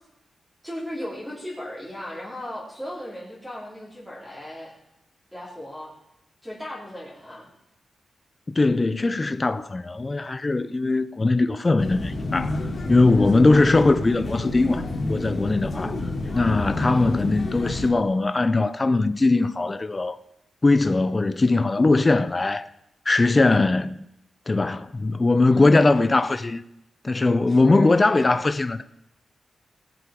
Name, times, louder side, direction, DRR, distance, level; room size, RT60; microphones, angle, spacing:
voice 1, 0.6-4.7 5.3-5.9 6.4-7.5 13.2-13.8 16.2-16.5 16.9-17.1 25.5-26.1 27.5-28.4, equal, 5° right, 3.6 m, -37 dB
voice 2, 8.5-16.0 16.3-20.2 20.6-22.7 23.1-24.0 24.5-26.6 27.0-28.8, left 3 dB, 25° left, 0.4 m, -20 dB
sound 1, 11.8-17.9, left 2 dB, 40° left, 2.6 m, -29 dB
18.0 x 7.4 x 5.1 m
wide cardioid pair, 145°, 0 cm